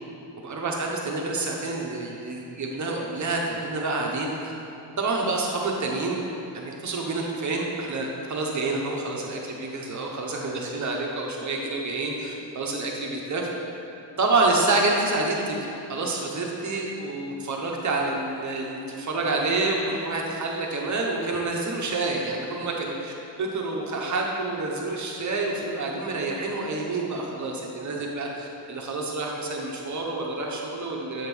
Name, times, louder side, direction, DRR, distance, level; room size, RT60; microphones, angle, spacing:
voice 1, 0.4-4.5 5.0-6.2 6.5-13.5 14.2-15.6 15.9-31.3, right 3 dB, 45° right, -1 dB, 0.9 m, -28 dB
7.9 x 3.6 x 6.2 m, 3.0 s
wide cardioid pair, 165°, 42 cm